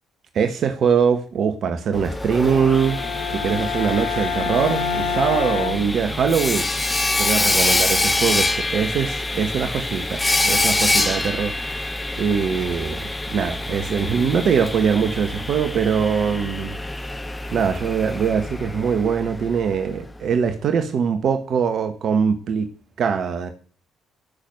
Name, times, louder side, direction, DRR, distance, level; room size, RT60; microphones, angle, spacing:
voice 1, 0.3-3.0 3.3-6.7 7.2-11.8 12.2-16.8 17.5-22.7 23.0-23.5, right 6 dB, 55° right, 8 dB, 1.7 m, -22 dB
Sawing, 1.9-19.7, left 2 dB, 20° left, 1.6 m, -25 dB
Bowed string instrument, 2.4-6.6, left 6 dB, 70° left, 1.3 m, -28 dB
15.5 x 6.7 x 8.0 m, 0.41 s
figure-of-eight pair, 45°, 0 cm